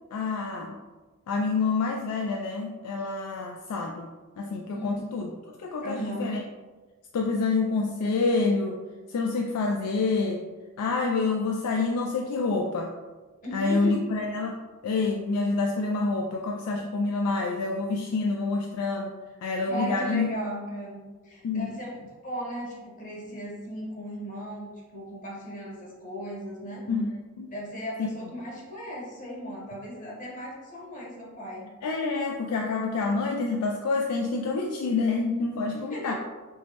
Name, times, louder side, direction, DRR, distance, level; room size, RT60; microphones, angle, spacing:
voice 1, 0.1-0.8 1.3-4.1 4.4-5.3 5.6-6.4 7.1-8.8 9.1-10.4 10.8-12.9 13.5-20.3 21.4-21.7 26.9-27.1 27.4-27.5 28.0-28.1 31.8-36.1, left 3 dB, 90° left, 1 dB, 0.3 m, -27 dB
voice 2, 5.8-6.3 13.4-14.0 19.7-26.9 27.5-31.7 35.7-36.1, equal, 35° left, -3 dB, 0.8 m, -37 dB
4.5 x 2.1 x 2.9 m, 1.3 s
head